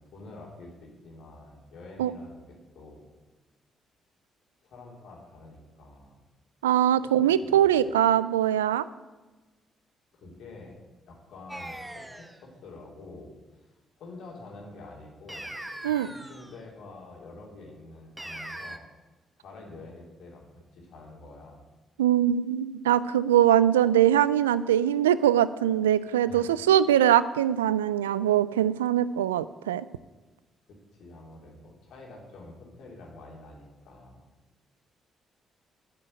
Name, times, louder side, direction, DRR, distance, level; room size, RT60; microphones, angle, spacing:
voice 1, 0.0-3.0 4.6-6.1 7.0-7.7 10.1-10.8 11.1-13.3 14.0-15.5 16.0-18.8 19.4-21.6 26.3-26.7 30.7-34.2, left 2 dB, 65° left, -2 dB, 3.3 m, -47 dB
voice 2, 6.6-8.8 15.8-16.1 22.0-29.9, right 11 dB, 85° right, 17 dB, 0.3 m, -22 dB
sound 1, 11.5-12.4 15.3-16.6 18.2-18.8, right 1 dB, 10° right, 1.2 m, -40 dB
9.9 x 6.8 x 9.0 m, 1.2 s
hypercardioid pair, 40°, 0 cm